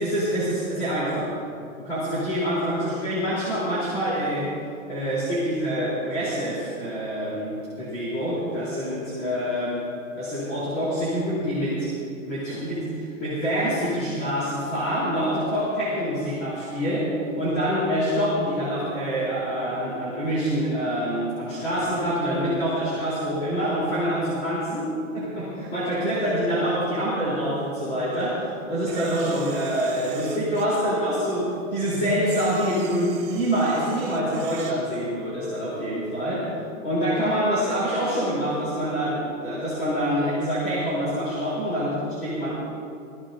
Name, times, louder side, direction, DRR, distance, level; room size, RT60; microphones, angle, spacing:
voice 1, 0.0-1.4 1.8-4.6 4.9-9.9 10.1-11.9 12.2-36.5 36.8-42.5, equal, 20° left, -9 dB, 4.1 m, -26 dB
Camera, 28.9-30.8 32.2-34.8, right 9 dB, 55° right, 2.2 m, -42 dB
21.5 x 16.5 x 2.8 m, 2.5 s
hypercardioid pair, 160°, 42 cm